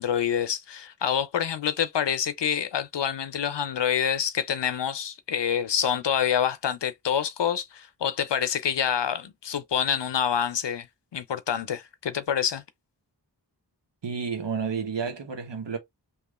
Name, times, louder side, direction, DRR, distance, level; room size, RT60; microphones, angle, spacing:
voice 1, 0.0-10.9 11.1-12.6, left 8 dB, 80° left, 0.6 m, -27 dB
voice 2, 14.0-15.8, right 6 dB, 85° right, 1.0 m, -30 dB
3.0 x 2.4 x 3.5 m
wide cardioid pair, 40°, 42 cm